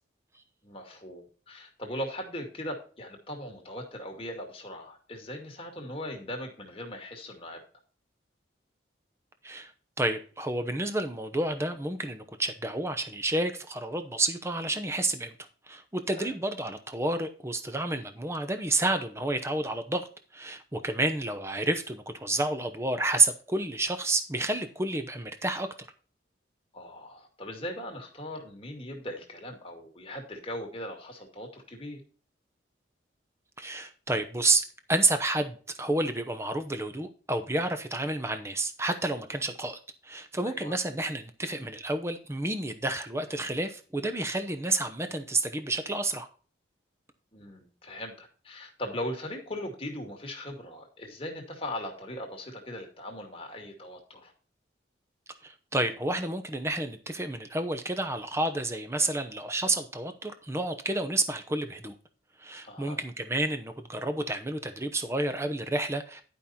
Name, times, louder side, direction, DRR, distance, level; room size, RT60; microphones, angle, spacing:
voice 1, 0.6-7.6 16.1-16.3 26.7-32.0 40.4-40.8 47.3-54.3 62.6-63.0, left 1 dB, 30° left, 2.2 m, -39 dB
voice 2, 10.0-15.3 15.7-20.1 20.3-25.7 33.6-46.3 55.4-61.9 62.4-66.2, right 2 dB, 15° right, 0.8 m, -30 dB
11.0 x 5.5 x 4.3 m
head